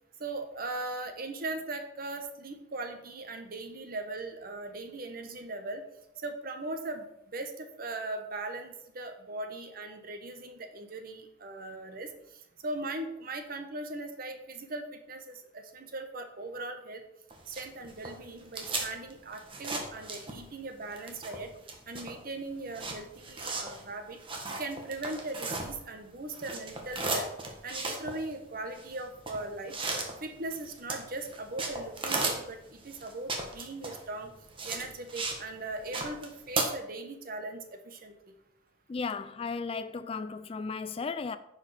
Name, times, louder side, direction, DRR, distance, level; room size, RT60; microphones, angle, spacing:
voice 1, 0.2-5.8 6.2-12.1 12.6-17.0 17.5-21.5 21.9-24.2 24.6-27.3 27.6-29.7 30.2-34.3 34.6-38.1, right 2 dB, 50° right, 1.1 m, -39 dB
sound 1, 17.3-20.6 20.9-26.0 26.3-35.4 35.7-36.6, right 3 dB, 25° right, 1.4 m, -36 dB
voice 2, 38.9-41.4, left 4 dB, 30° left, 0.3 m, -35 dB
10.0 x 5.0 x 4.9 m
head